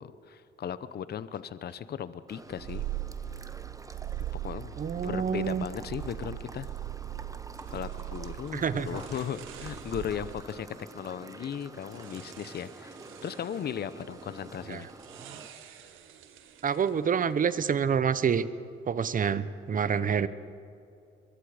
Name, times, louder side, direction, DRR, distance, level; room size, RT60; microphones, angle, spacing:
voice 1, 0.0-2.8 4.4-6.7 7.7-10.7 10.9-14.9, left 9 dB, 55° left, 14 dB, 0.8 m, -37 dB
sound 1, 2.3-15.5, right 2 dB, 15° right, 1.0 m, -48 dB
Purr, 2.5-10.6, right 14 dB, 70° right, 0.8 m, -39 dB
voice 2, 4.8-5.7 8.5-8.9 14.7-14.8 16.6-18.5 18.9-20.3, right 7 dB, 45° right, 15 dB, 0.9 m, -27 dB
sound 2, 7.6-17.7, right 8 dB, 90° right, 1.6 m, -52 dB
23.5 x 22.0 x 5.1 m, 2.7 s
cardioid pair, 90°, 20 cm